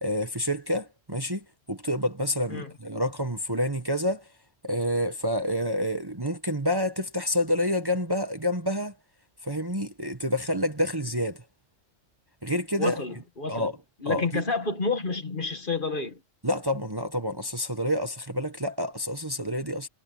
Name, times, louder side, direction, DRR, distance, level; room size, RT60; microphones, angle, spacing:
voice 1, 0.0-4.3 4.6-8.9 9.4-11.4 12.4-13.0 13.5-13.8 14.0-14.4 16.4-19.9, equal, 20° right, 1.2 m, -28 dB
voice 2, 12.8-13.7 14.0-16.2, left 4 dB, 40° left, 1.7 m, -29 dB
omnidirectional pair, 1.3 m